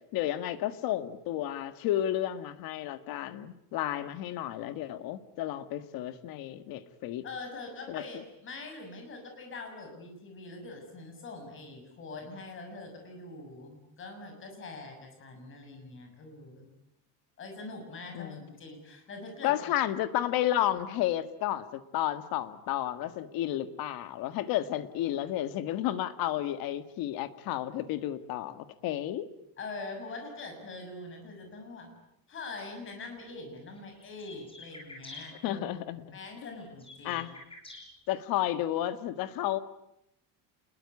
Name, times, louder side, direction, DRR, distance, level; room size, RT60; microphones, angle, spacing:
voice 1, 0.1-7.2 7.9-8.0 18.1-18.4 19.4-29.3 35.4-36.2 37.0-37.3 38.1-39.6, left 13 dB, 55° left, 11 dB, 1.8 m, -32 dB
voice 2, 7.2-16.7 17.4-19.5 29.6-31.9 32.3-35.6 35.9-37.3, left 3 dB, 30° left, 4 dB, 6.9 m, -43 dB
sound 1, 32.6-32.7 33.6-35.2 36.3-37.8, left 3 dB, 15° left, 6.3 m, -48 dB
28.5 x 21.5 x 9.7 m, 0.80 s
cardioid pair, 180°, 41 cm